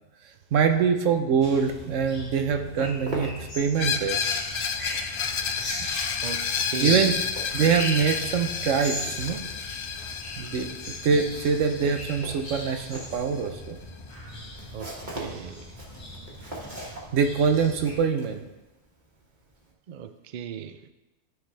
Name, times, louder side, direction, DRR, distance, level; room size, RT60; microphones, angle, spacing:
voice 1, 0.5-4.2 6.8-7.3 7.5-9.4 10.4-13.8 17.1-18.4, right 6 dB, 85° right, 6 dB, 1.1 m, -24 dB
sound 1, 1.4-18.0, left 1 dB, 25° left, 1.5 m, -38 dB
Walk footsteps, 2.3-4.1 4.3-19.7, right 1 dB, 40° right, 1.6 m, -43 dB
Screech, 3.8-13.4, left 7 dB, 60° left, 0.7 m, -31 dB
voice 2, 6.2-7.1 14.7-15.7 19.9-20.9, right 7 dB, 60° right, 10 dB, 0.5 m, -36 dB
13.0 x 4.7 x 3.3 m, 1.0 s
omnidirectional pair, 1.3 m